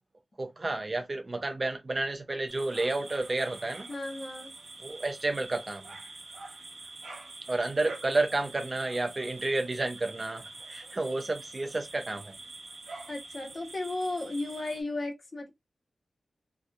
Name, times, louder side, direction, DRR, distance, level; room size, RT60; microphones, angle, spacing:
voice 1, 0.4-3.9 4.8-5.9 7.5-12.4, right 2 dB, 35° right, 0.4 m, -31 dB
sound 1, 2.5-14.8, right 3 dB, 70° right, 0.7 m, -46 dB
voice 2, 3.9-4.5 13.1-15.5, left 2 dB, 40° left, 0.7 m, -35 dB
2.6 x 2.2 x 2.3 m
wide cardioid pair, 105°, 0 cm